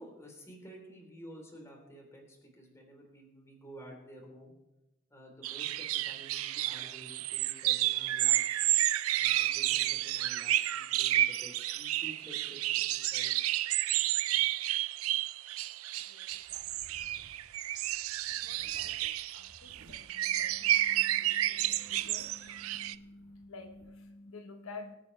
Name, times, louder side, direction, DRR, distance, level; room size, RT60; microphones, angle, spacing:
voice 1, 0.0-4.5 5.1-8.6 9.1-13.3, equal, 15° left, 0 dB, 3.6 m, -51 dB
sound 1, 5.4-22.9, right 14 dB, 90° right, 0.4 m, -31 dB
voice 2, 16.1-16.9 18.3-24.9, left 3 dB, 90° left, 6 dB, 1.2 m, -51 dB
sound 2, 16.3-21.1 21.5-23.9, right 1 dB, 70° right, 3.3 m, -60 dB
24.5 x 8.9 x 3.3 m, 0.99 s
head